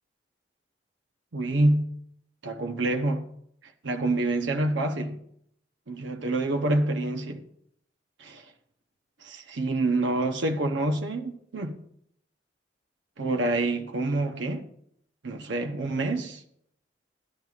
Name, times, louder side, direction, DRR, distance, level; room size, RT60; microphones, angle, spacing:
voice 1, 1.3-1.9 2.4-3.3 3.8-5.2 5.9-7.4 8.2-8.4 9.2-11.7 13.2-14.6 15.2-16.4, right 2 dB, 85° right, 0.8 m, -27 dB
13.5 x 10.5 x 2.4 m
head